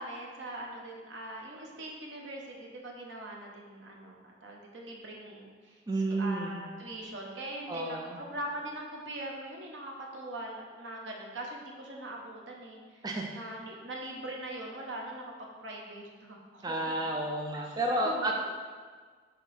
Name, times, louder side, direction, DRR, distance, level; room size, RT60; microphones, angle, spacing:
voice 1, 0.0-13.0 13.3-16.9 17.6-17.8 18.0-18.4, right 1 dB, 80° right, -1 dB, 1.0 m, -42 dB
voice 2, 5.9-6.6 7.7-8.2 13.0-13.3 16.6-18.4, right 1 dB, 20° right, 0 dB, 0.4 m, -31 dB
6.0 x 3.9 x 4.1 m, 1.5 s
head